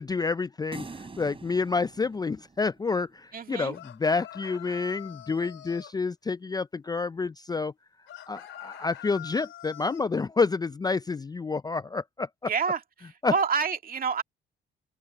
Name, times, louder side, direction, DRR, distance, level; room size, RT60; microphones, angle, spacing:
voice 1, 0.0-7.7 8.3-12.5 13.2-13.3, left 4 dB, 20° left, 0.4 m, -29 dB
sound 1, 0.7-3.1, right 4 dB, 30° right, 3.0 m, -45 dB
voice 2, 3.3-3.7 12.5-14.2, right 5 dB, 45° right, 2.1 m, -28 dB
sound 2, 3.7-6.0 8.1-10.1, left 13 dB, 75° left, 3.4 m, -44 dB
open air
cardioid pair, 90°, 20 cm